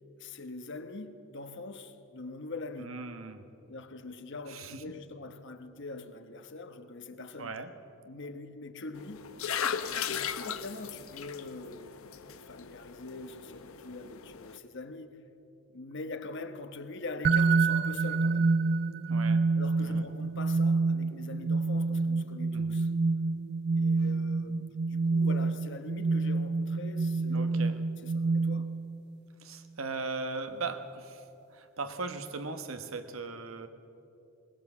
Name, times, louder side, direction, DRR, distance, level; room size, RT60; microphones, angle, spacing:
voice 1, 0.2-3.0 3.7-7.6 8.0-9.3 10.1-12.1 12.5-15.2 15.7-18.5 19.6-22.9 23.7-28.7, left 3 dB, 60° left, 1.2 m, -43 dB
voice 2, 2.8-3.5 4.5-4.8 7.4-7.7 19.1-19.5 19.8-20.0 22.5-22.8 24.0-24.1 27.3-27.8 29.4-33.7, right 3 dB, 75° right, 1.3 m, -39 dB
sound 1, 9.0-14.6, left 7 dB, 85° left, 0.9 m, -37 dB
sound 2, 17.2-29.0, right 3 dB, 50° right, 0.5 m, -28 dB
21.0 x 19.5 x 7.4 m
head